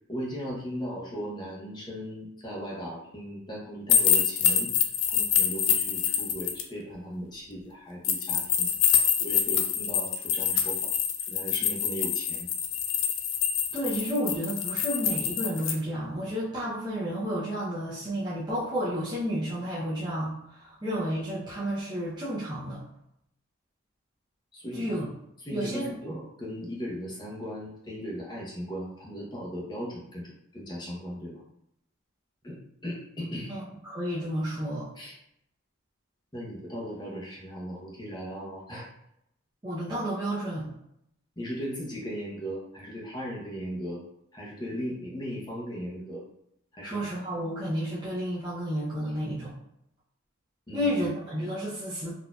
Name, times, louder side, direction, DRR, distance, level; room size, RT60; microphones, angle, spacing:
voice 1, 0.1-8.7 9.2-10.9 11.3-12.5 24.5-24.9 25.4-31.4 32.4-32.6 32.8-33.6 35.0-35.1 36.3-38.9 41.4-44.0 44.3-46.2 46.7-47.1 50.7-50.9, equal, 20° left, -4 dB, 0.8 m, -37 dB
sound 1, 3.9-6.6 8.0-15.7, left 8 dB, 70° left, 0.4 m, -26 dB
voice 2, 13.7-22.8 24.7-25.1 25.5-26.2 33.5-34.9 39.6-40.7 46.8-49.5 50.7-52.1, equal, 20° right, -9 dB, 0.6 m, -31 dB
4.2 x 2.7 x 2.3 m, 0.78 s
head